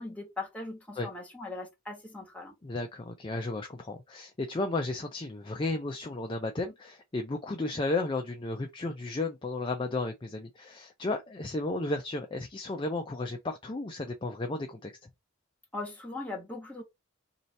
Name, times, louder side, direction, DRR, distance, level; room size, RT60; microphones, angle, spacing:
voice 1, 0.0-2.5 15.7-16.8, left 2 dB, 5° left, 1.2 m, -39 dB
voice 2, 2.6-14.9, left 2 dB, 20° left, 0.4 m, -33 dB
3.2 x 2.8 x 4.0 m
head